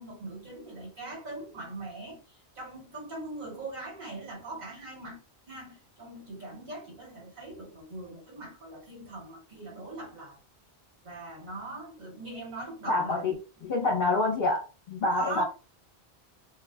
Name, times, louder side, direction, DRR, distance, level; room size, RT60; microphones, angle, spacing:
voice 1, 0.0-5.2 5.5-10.4 11.0-13.7 15.2-15.4, right 2 dB, 45° right, 1.3 m, -41 dB
voice 2, 12.9-13.4 13.6-15.4, left 2 dB, 65° left, 1.0 m, -27 dB
2.6 x 2.3 x 2.3 m
omnidirectional pair, 1.1 m